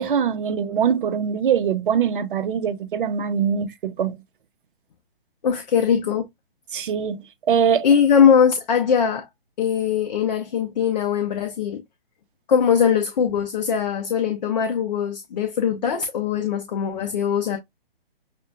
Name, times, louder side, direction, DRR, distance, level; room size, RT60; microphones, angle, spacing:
voice 1, 0.0-4.2 6.7-7.2 7.5-7.9, right 7 dB, 55° right, 0.8 m, -22 dB
voice 2, 5.4-6.3 7.8-9.3 9.6-11.8 12.5-17.6, left 7 dB, 45° left, 0.9 m, -21 dB
6.7 x 2.7 x 2.3 m
hypercardioid pair, 145°, 30 cm